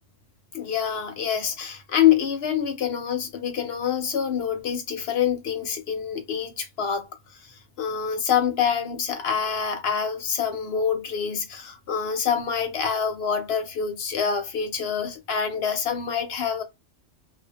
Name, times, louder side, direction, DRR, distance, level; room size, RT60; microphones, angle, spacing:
voice 1, 0.5-7.1 7.4-16.6, left 8 dB, 65° left, 0.8 m, -26 dB
2.1 x 2.1 x 2.9 m
omnidirectional pair, 1.2 m